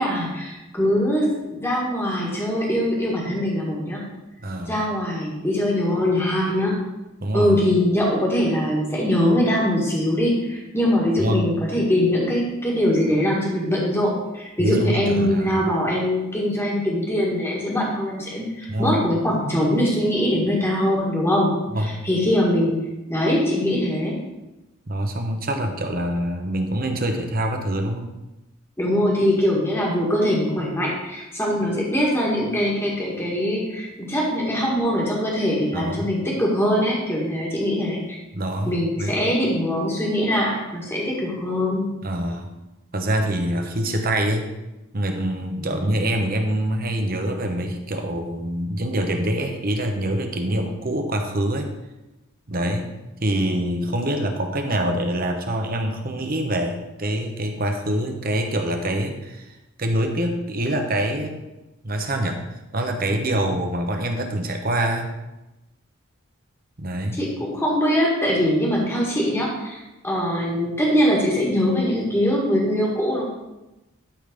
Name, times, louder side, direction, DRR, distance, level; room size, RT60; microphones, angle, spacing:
voice 1, 0.0-4.0 4.7-6.8 7.3-21.5 21.8-22.7 23.1-24.2 28.8-38.0 38.7-41.9 45.6-45.7 67.1-73.3, equal, 10° left, -3 dB, 1.7 m, -22 dB
voice 2, 4.4-4.8 7.2-7.6 11.2-11.5 14.6-15.7 18.7-19.0 21.7-22.0 24.9-28.1 35.7-36.1 38.3-39.3 42.0-42.5 42.9-44.5 44.9-51.7 52.5-52.9 53.2-61.4 61.8-62.4 62.7-65.1 66.8-67.2, right 1 dB, 45° right, 4 dB, 1.0 m, -25 dB
12.0 x 3.9 x 5.1 m, 1.0 s
head